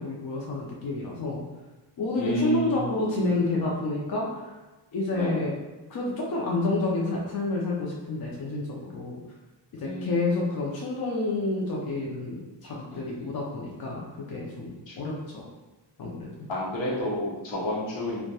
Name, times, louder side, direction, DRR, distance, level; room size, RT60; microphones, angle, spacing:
voice 1, 0.0-1.4 2.0-4.5 4.9-5.5 5.9-9.2 9.7-14.0 14.3-15.4 16.0-16.2, left 2 dB, 55° left, -3 dB, 0.5 m, -29 dB
voice 2, 2.1-3.3 5.1-5.4 9.8-10.3 12.9-13.3 14.9-15.0 16.5-18.2, equal, 80° left, -5 dB, 0.9 m, -30 dB
2.8 x 2.1 x 2.2 m, 1.1 s
cardioid pair, 75°, 44 cm